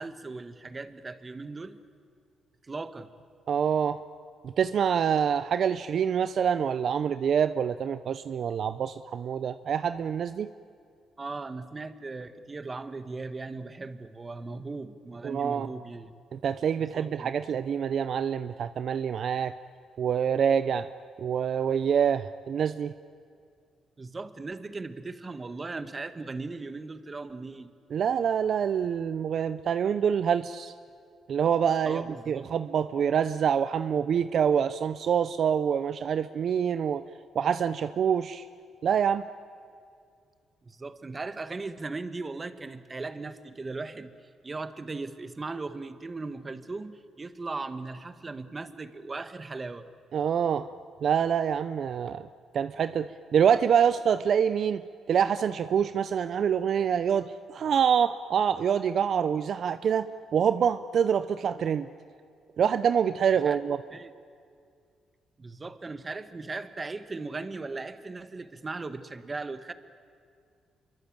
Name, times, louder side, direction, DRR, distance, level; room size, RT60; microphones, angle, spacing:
voice 1, 0.0-1.8 2.6-3.1 11.2-16.1 16.9-17.3 24.0-27.7 31.8-32.5 40.6-44.1 44.4-49.9 63.4-63.6 63.9-64.1 65.4-69.7, right 3 dB, 25° right, 11 dB, 1.4 m, -38 dB
voice 2, 3.5-4.0 4.4-10.5 15.2-15.7 16.3-19.5 20.0-20.9 21.2-22.9 27.9-30.7 31.3-37.0 37.3-38.4 38.8-39.2 50.1-50.7 51.0-52.3 52.5-60.1 60.3-61.9 62.6-63.8, right 8 dB, 60° right, 12 dB, 0.6 m, -26 dB
25.5 x 23.5 x 8.8 m, 2.3 s
cardioid pair, 90°, 0 cm